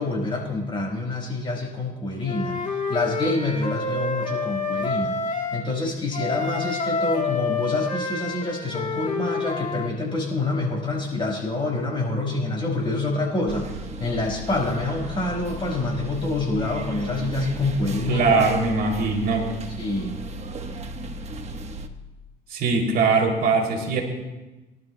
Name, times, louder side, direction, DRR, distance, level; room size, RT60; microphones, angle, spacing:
voice 1, 0.0-2.6 2.9-5.2 5.5-18.4 19.3-19.4 19.8-20.1, left 2 dB, 30° left, -1 dB, 5.0 m, -27 dB
Wind instrument woodwind instrument, 2.2-5.6 6.1-9.9, left 4 dB, 45° left, 2.0 m, -28 dB
sound 1, 13.5-21.9, right 1 dB, 40° right, 1.2 m, -35 dB
voice 2, 18.1-19.5 22.5-24.0, right 4 dB, 65° right, 0 dB, 2.8 m, -21 dB
23.5 x 12.0 x 2.2 m, 1.1 s
cardioid pair, 110°, 17 cm